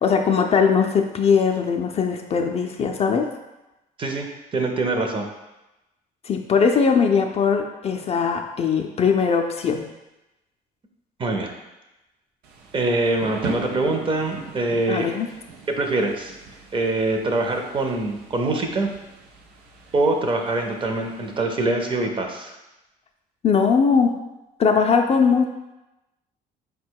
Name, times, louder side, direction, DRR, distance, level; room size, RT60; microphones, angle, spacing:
voice 1, 0.0-3.3 6.2-9.9 14.9-15.3 23.4-24.1 24.6-25.5, left 6 dB, 35° left, 4 dB, 0.4 m, -20 dB
voice 2, 4.5-5.3 11.2-11.5 12.7-15.1 15.7-16.3 16.7-18.9 19.9-22.6, right 2 dB, 30° right, 3 dB, 0.6 m, -24 dB
Thunder / Rain, 12.4-21.4, right 4 dB, 80° right, 0.6 m, -40 dB
4.4 x 2.2 x 4.5 m, 0.99 s
cardioid pair, 110°, 17 cm